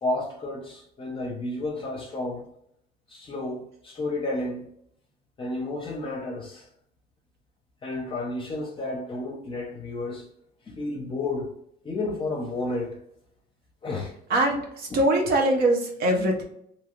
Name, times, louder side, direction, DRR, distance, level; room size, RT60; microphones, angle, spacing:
voice 1, 0.0-2.5 3.1-4.6 5.4-6.7 7.8-10.3 10.7-11.5 11.8-13.0 13.8-14.1 14.9-15.0, left 2 dB, 30° left, 0.6 m, -31 dB
voice 2, 14.3-16.4, right 1 dB, 75° right, 0.9 m, -22 dB
2.7 x 2.3 x 3.0 m
cardioid pair, 110°, 17 cm